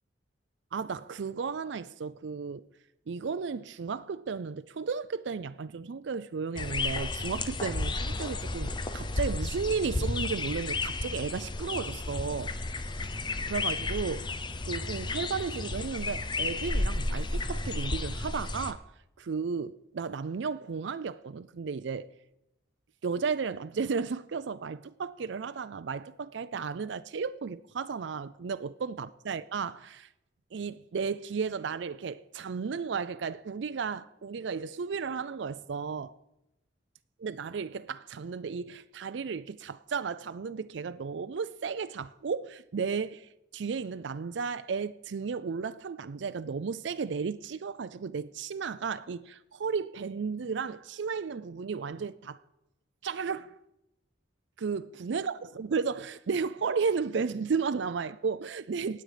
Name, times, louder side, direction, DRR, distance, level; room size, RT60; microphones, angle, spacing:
voice 1, 0.7-2.6 3.1-12.5 13.5-14.3 14.6-18.9 19.2-22.1 23.0-30.1 30.5-36.1 37.2-52.4 53.0-53.6 54.6-59.0, right 5 dB, 75° right, 0.4 m, -34 dB
sound 1, 6.6-18.7, left 2 dB, 25° left, 0.7 m, -32 dB
18.5 x 7.8 x 5.0 m
head